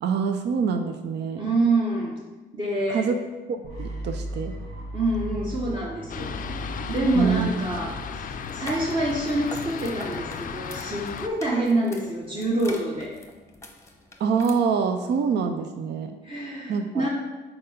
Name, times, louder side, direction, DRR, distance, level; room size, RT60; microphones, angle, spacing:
voice 1, 0.0-1.5 2.9-3.2 3.5-4.5 7.1-7.5 14.2-16.1 16.7-17.1, right 6 dB, 60° right, 7 dB, 0.5 m, -25 dB
voice 2, 1.4-2.2 2.5-3.1 4.9-6.3 6.9-13.1 16.2-17.1, right 2 dB, 25° right, -5 dB, 1.0 m, -26 dB
sound 1, 3.6-9.6, right 1 dB, 85° right, 1.7 m, -36 dB
Fixed-wing aircraft airplane, 6.1-11.3, left 7 dB, 45° left, 0.4 m, -35 dB
sound 2, 8.4-14.5, left 2 dB, 15° left, 0.9 m, -44 dB
4.4 x 4.3 x 5.2 m, 1.2 s
cardioid pair, 90°, 20 cm